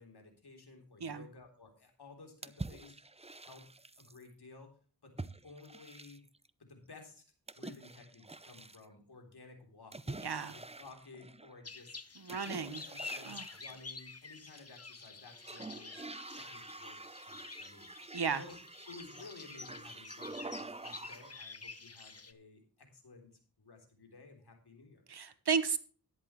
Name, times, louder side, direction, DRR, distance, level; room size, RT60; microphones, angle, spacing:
voice 1, 0.0-2.9 3.4-3.7 4.0-4.7 5.0-6.2 6.6-7.2 7.5-16.0 16.3-17.0 17.3-17.9 18.3-18.6 18.9-25.0, left 3 dB, 85° left, 3 dB, 3.6 m, -55 dB
sound 1, 2.4-4.2 5.2-6.5 7.5-8.9 9.9-11.6 12.3-13.8 14.4-15.1 15.4-21.4, right 2 dB, 15° right, 0.7 m, -47 dB
voice 2, 10.2-10.5 12.1-12.8 13.2-13.5 18.1-18.4 25.1-25.8, right 6 dB, 85° right, 12 dB, 1.3 m, -34 dB
sound 2, 11.6-22.3, left 4 dB, 40° left, 1.3 m, -49 dB
13.5 x 11.0 x 3.2 m, 0.39 s
cardioid pair, 50°, 38 cm